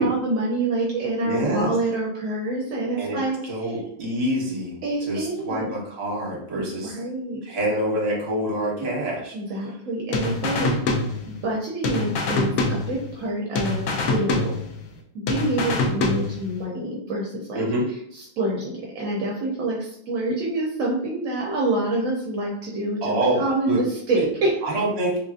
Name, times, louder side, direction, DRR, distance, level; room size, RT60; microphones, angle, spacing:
voice 1, 0.0-3.8 4.8-5.7 6.5-7.4 8.8-8.9 9.3-14.6 15.1-17.6 18.1-24.6, right 2 dB, 75° right, -3 dB, 1.0 m, -27 dB
voice 2, 1.2-1.7 2.9-3.2 3.5-4.7 5.1-6.9 7.4-9.3 17.5-17.9 23.0-23.8 24.2-24.3 24.6-25.2, right 1 dB, 50° right, -3 dB, 1.2 m, -26 dB
sound 1, 10.1-11.6 11.8-13.3 13.5-15.0 15.3-16.6, left 3 dB, 80° left, 1.0 m, -25 dB
3.3 x 2.5 x 2.4 m, 0.70 s
omnidirectional pair, 1.4 m